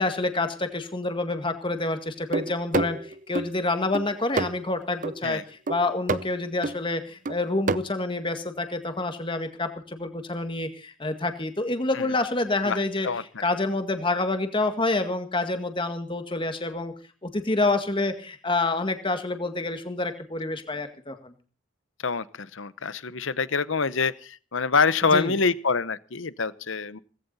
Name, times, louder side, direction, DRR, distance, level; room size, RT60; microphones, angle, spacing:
voice 1, 0.0-3.0 3.3-5.4 5.7-13.1 13.4-16.9 17.2-21.3 25.1-25.3, left 2 dB, 25° left, 7 dB, 1.9 m, -27 dB
sound 1, 2.3-3.5 3.9-4.7 5.0-5.2 5.7-6.4 6.6-6.7 7.3-7.8, right 3 dB, 40° right, 0.6 m, -28 dB
voice 2, 12.6-13.2 22.0-27.0, left 4 dB, 70° left, 17 dB, 0.9 m, -26 dB
18.5 x 16.0 x 4.2 m, 0.38 s
head